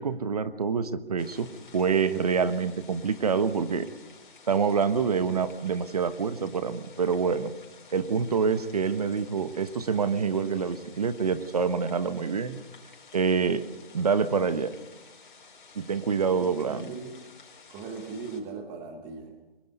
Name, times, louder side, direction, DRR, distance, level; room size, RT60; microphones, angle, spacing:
voice 1, 0.0-1.5 1.7-3.9 4.5-7.5 7.9-12.6 13.1-13.6 13.9-14.7 15.7-16.9, right 5 dB, 40° right, 12 dB, 1.1 m, -26 dB
sound 1, 1.2-18.4, left 4 dB, 55° left, 4.9 m, -53 dB
voice 2, 16.4-17.1 17.7-19.3, right 4 dB, 10° right, 5 dB, 1.0 m, -39 dB
28.5 x 23.0 x 5.4 m, 1.1 s
hypercardioid pair, 165°, 30 cm